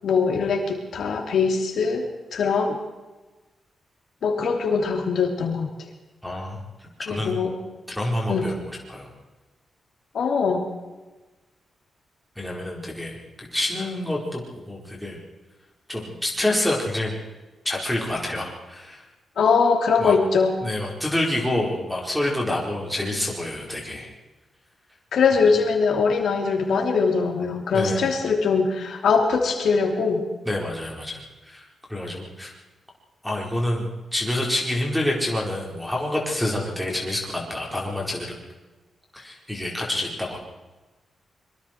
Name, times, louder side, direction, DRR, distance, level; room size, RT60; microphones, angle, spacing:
voice 1, 0.0-2.0 2.3-2.8 4.2-5.7 7.1-7.6 8.3-8.5 10.1-10.6 19.4-20.6 25.1-30.2, left 5 dB, 70° left, 3 dB, 3.1 m, -22 dB
voice 2, 6.2-7.3 7.9-8.6 8.9-9.1 12.3-15.2 15.9-17.2 17.6-19.0 20.0-20.1 20.6-24.1 27.7-28.1 30.4-32.5 33.2-38.4 39.1-40.4, left 1 dB, ahead, -3 dB, 4.8 m, -27 dB
25.5 x 23.5 x 4.7 m, 1.2 s
wide cardioid pair, 155°, 0 cm